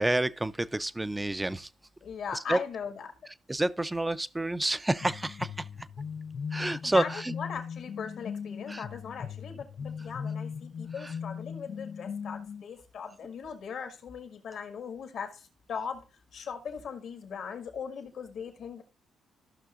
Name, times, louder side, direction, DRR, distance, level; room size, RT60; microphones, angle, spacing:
voice 1, 0.0-1.7 2.5-2.6 3.5-5.7 6.5-7.3 8.7-8.8 11.0-11.1, right 1 dB, 15° right, 0.4 m, -29 dB
voice 2, 2.0-3.1 6.8-16.0 16.3-18.8, left 6 dB, 70° left, 1.7 m, -39 dB
sound 1, 5.0-12.6, left 6 dB, 50° left, 0.5 m, -39 dB
14.5 x 5.9 x 2.4 m
cardioid pair, 90°, 0 cm